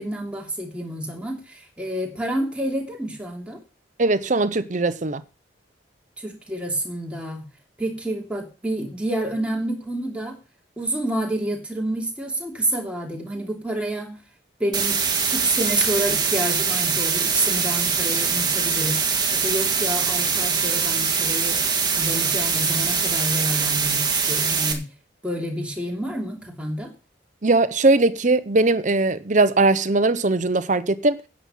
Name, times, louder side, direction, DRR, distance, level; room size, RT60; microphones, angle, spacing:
voice 1, 0.0-3.6 6.2-7.4 7.8-10.4 10.8-14.2 14.6-15.0 15.3-19.0 19.3-21.6 21.9-24.9 25.2-26.9, right 1 dB, 5° right, 2.9 m, -28 dB
voice 2, 4.0-5.2 27.4-31.2, right 2 dB, 40° right, 0.8 m, -20 dB
sound 1, 14.7-24.7, right 6 dB, 25° right, 1.9 m, -23 dB
10.0 x 8.8 x 5.6 m
head